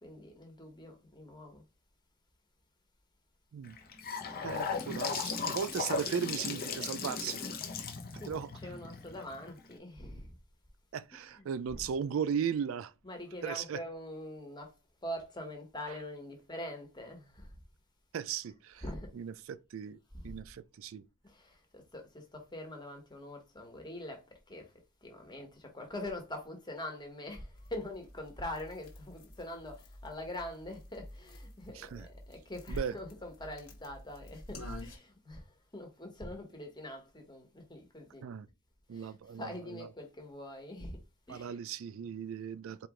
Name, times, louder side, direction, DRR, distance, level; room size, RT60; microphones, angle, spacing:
voice 1, 0.0-1.6 7.8-7.9 8.2-10.3 11.1-11.9 13.0-17.6 18.8-19.1 20.1-20.4 21.2-38.3 38.9-41.0 41.3-41.6 42.6-42.7, left 1 dB, 20° left, 1.3 m, -44 dB
Gurgling / Sink (filling or washing) / Bathtub (filling or washing), 3.6-9.7, left 5 dB, 40° left, 0.9 m, -37 dB
voice 2, 4.4-7.4 8.3-8.5 10.9-12.9 13.4-13.8 18.1-18.8 19.1-21.0 31.7-32.1 32.7-32.9 38.2-38.5 38.9-39.5 41.3-42.9, right 7 dB, 65° right, 0.3 m, -37 dB
sound 1, 27.5-35.0, left 1 dB, 60° left, 1.6 m, -50 dB
4.6 x 3.0 x 3.7 m
head